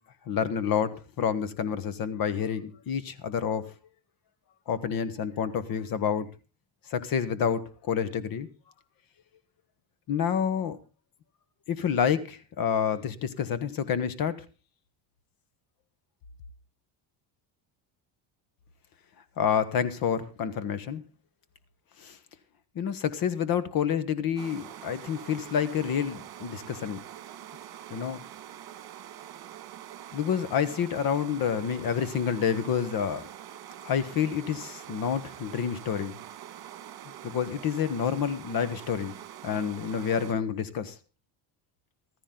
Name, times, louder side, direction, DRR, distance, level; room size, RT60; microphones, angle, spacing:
voice 1, 0.3-3.6 4.7-6.3 6.9-7.6 7.9-8.5 10.1-10.8 11.7-14.3 19.4-21.0 22.0-22.2 22.7-27.0 27.9-28.2 30.1-33.3 33.8-36.1 37.2-39.1 39.4-40.9, left 8 dB, 45° left, 14 dB, 1.3 m, -28 dB
sound 1, 24.4-40.3, right 11 dB, 50° right, 1.9 m, -45 dB
15.0 x 13.5 x 3.8 m, 0.32 s
cardioid pair, 165°, 48 cm